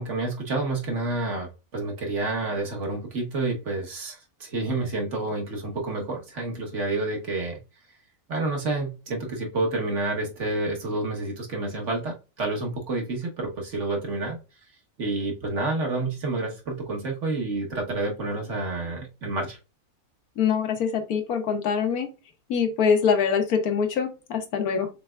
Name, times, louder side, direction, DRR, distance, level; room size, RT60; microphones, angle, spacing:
voice 1, 0.0-7.6 8.3-14.4 15.0-19.6, right 2 dB, 55° right, 1 dB, 1.5 m, -29 dB
voice 2, 20.4-22.1 22.5-24.9, left 6 dB, 85° left, 6 dB, 1.4 m, -24 dB
6.6 x 3.4 x 2.3 m, 0.29 s
omnidirectional pair, 1.6 m